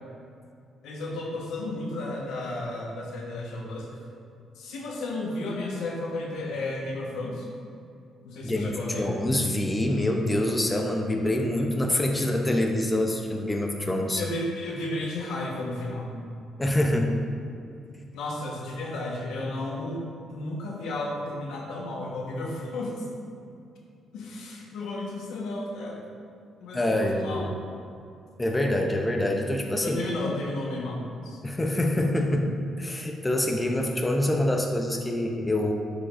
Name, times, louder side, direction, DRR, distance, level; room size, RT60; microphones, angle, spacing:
voice 1, 0.8-4.0 4.5-7.5 8.2-9.1 14.2-16.2 18.1-23.1 24.1-26.1 26.6-27.6 29.8-31.4, left 2 dB, 85° left, -2 dB, 1.2 m, -33 dB
voice 2, 8.4-14.2 16.6-17.2 26.7-27.5 28.4-30.0 31.4-32.5 32.8-35.7, left 1 dB, 15° left, 2 dB, 0.7 m, -25 dB
11.0 x 5.0 x 2.6 m, 2.4 s
cardioid pair, 90°, 0 cm